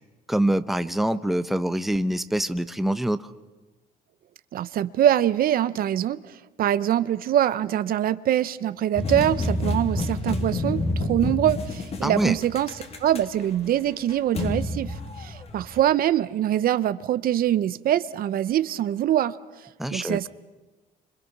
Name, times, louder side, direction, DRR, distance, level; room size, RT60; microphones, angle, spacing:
voice 1, 0.3-3.3 12.0-12.4 19.8-20.3, right 1 dB, ahead, 11 dB, 0.9 m, -25 dB
voice 2, 4.5-6.2 6.6-12.7 13.0-19.4 19.9-20.3, right 11 dB, 60° right, 15 dB, 0.8 m, -24 dB
sound 1, 9.0-15.8, left 2 dB, 35° left, 2.9 m, -29 dB
29.0 x 26.0 x 6.0 m, 1.2 s
cardioid pair, 110°, 17 cm